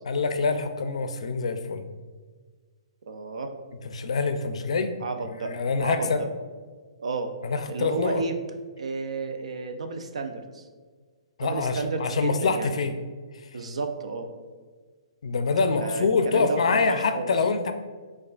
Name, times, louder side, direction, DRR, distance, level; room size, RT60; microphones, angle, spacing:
voice 1, 0.1-1.8 3.9-4.9 5.2-6.2 7.4-8.2 11.4-13.0 15.2-17.7, left 4 dB, 75° left, 8 dB, 0.4 m, -25 dB
voice 2, 3.1-3.5 5.0-5.6 5.8-6.3 7.0-7.3 7.7-8.4 8.8-10.6 11.4-12.7 13.5-14.3 15.7-17.3, right 3 dB, 85° right, 6 dB, 0.5 m, -32 dB
6.7 x 2.3 x 2.4 m, 1.5 s
hypercardioid pair, 165°, 3 cm